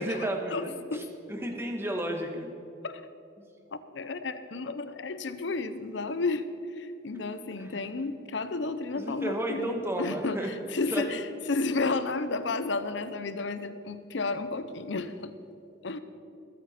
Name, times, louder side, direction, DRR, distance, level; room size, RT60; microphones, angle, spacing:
voice 1, 0.0-2.5 3.4-3.5 7.6-7.8 8.9-10.5 10.9-11.1, right 1 dB, 15° right, 3 dB, 1.3 m, -33 dB
voice 2, 0.5-1.0 2.8-3.1 3.7-6.4 6.8-15.3 15.8-16.0, left 3 dB, 80° left, 12 dB, 0.8 m, -32 dB
21.0 x 9.3 x 4.3 m, 2.7 s
head